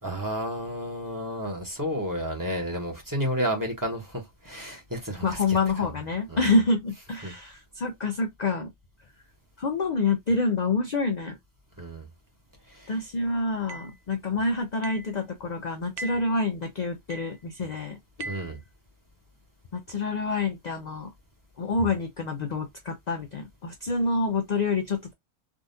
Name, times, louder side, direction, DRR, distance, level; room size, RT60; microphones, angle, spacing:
voice 1, 0.0-5.9 6.3-6.5 7.2-7.3 11.8-12.1 12.7-12.9 18.2-18.6, equal, 20° right, 1.1 m, -31 dB
voice 2, 5.2-8.7 9.6-11.4 12.9-18.0 19.7-21.1 21.6-25.1, left 3 dB, 50° left, 0.5 m, -27 dB
sound 1, 13.7-14.0 14.8-15.1 16.0-16.3 17.1-17.4 18.2-18.6, right 3 dB, 65° right, 0.7 m, -39 dB
3.6 x 2.4 x 2.6 m
omnidirectional pair, 1.1 m